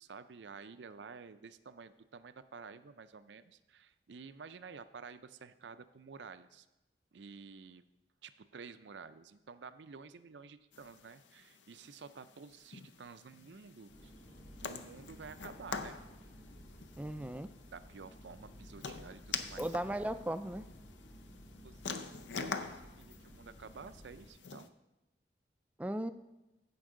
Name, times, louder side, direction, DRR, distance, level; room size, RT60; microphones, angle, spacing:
voice 1, 0.0-6.7 7.1-7.8 8.2-14.1 14.6-16.0 17.7-19.6 21.6-24.7, right 5 dB, 80° right, 12 dB, 0.5 m, -51 dB
sound 1, 10.7-24.7, left 5 dB, 90° left, 0.6 m, -46 dB
sound 2, 13.9-24.3, equal, 65° left, 2.2 m, -55 dB
voice 2, 17.0-17.5 19.6-20.7 25.8-26.1, right 1 dB, 10° right, 11 dB, 0.3 m, -36 dB
15.5 x 5.4 x 3.7 m, 0.98 s
head